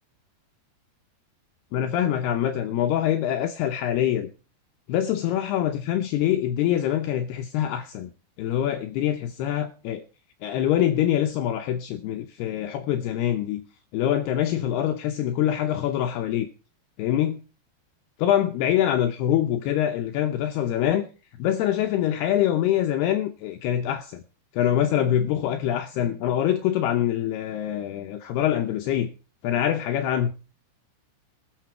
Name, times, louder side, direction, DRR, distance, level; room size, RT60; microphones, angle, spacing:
voice 1, 1.7-4.3 4.9-8.1 8.4-10.0 10.4-13.6 13.9-16.5 17.0-17.4 18.2-21.1 21.4-24.2 24.5-29.1 29.4-30.3, left 11 dB, 75° left, 6 dB, 2.6 m, -24 dB
20.0 x 6.9 x 4.5 m, 0.34 s
omnidirectional pair, 5.1 m